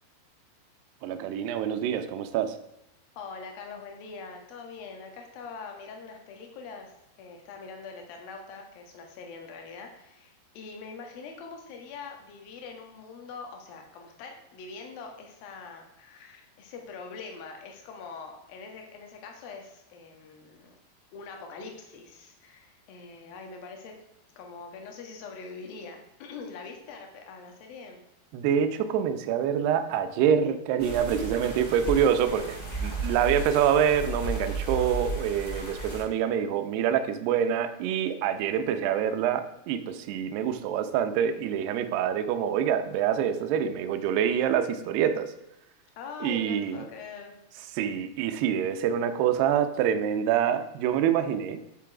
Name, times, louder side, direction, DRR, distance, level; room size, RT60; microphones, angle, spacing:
voice 1, 1.0-2.5 28.3-45.3 46.2-46.8 47.8-51.6, right 9 dB, 75° right, 8 dB, 2.6 m, -26 dB
voice 2, 3.2-20.7 21.1-24.0 24.4-28.0 31.2-31.7 46.0-47.3, left 4 dB, 60° left, 2 dB, 3.1 m, -43 dB
sound 1, 30.8-36.0, right 2 dB, 10° left, 2.3 m, -34 dB
10.5 x 7.4 x 4.8 m, 0.86 s
omnidirectional pair, 5.4 m